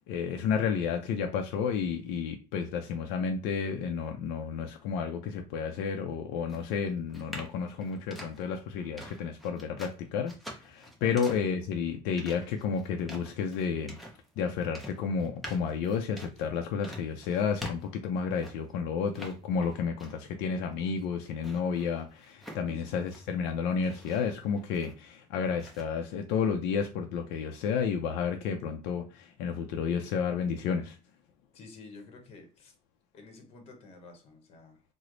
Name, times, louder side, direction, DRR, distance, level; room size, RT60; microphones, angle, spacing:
voice 1, 0.1-14.0 14.4-31.0, left 6 dB, 75° left, 0.4 m, -31 dB
sound 1, 6.5-18.8 19.1-20.4 20.7-23.3 23.7-25.2 25.6-25.8, equal, ahead, 0.5 m, -47 dB
voice 2, 22.7-23.0 31.5-32.7 33.1-34.8, left 3 dB, 35° left, 0.9 m, -50 dB
3.1 x 2.0 x 3.8 m
cardioid pair, 170°, 17 cm